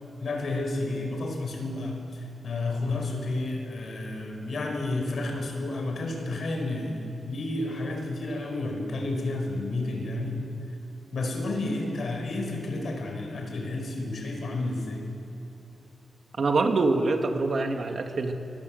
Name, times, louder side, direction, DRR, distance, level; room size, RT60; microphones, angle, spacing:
voice 1, 0.2-10.5 11.1-15.0, left 2 dB, 60° left, 3 dB, 5.0 m, -31 dB
voice 2, 16.4-18.3, right 3 dB, 45° right, 4 dB, 2.0 m, -25 dB
24.5 x 23.5 x 7.9 m, 2.8 s
wide cardioid pair, 140°, 0 cm